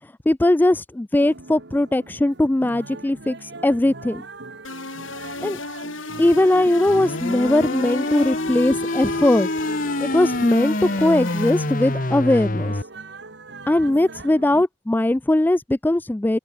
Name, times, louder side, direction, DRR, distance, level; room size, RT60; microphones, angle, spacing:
voice 1, 0.3-4.2 5.4-5.6 6.2-9.5 10.0-12.7 13.7-16.4, left 1 dB, 10° left, 0.3 m, -20 dB
sound 1, 1.2-14.7, right 2 dB, 60° right, 1.9 m, -40 dB
sound 2, 4.6-12.1, left 3 dB, 85° left, 6.7 m, -34 dB
sound 3, 6.9-12.8, left 1 dB, 45° left, 1.9 m, -26 dB
open air
head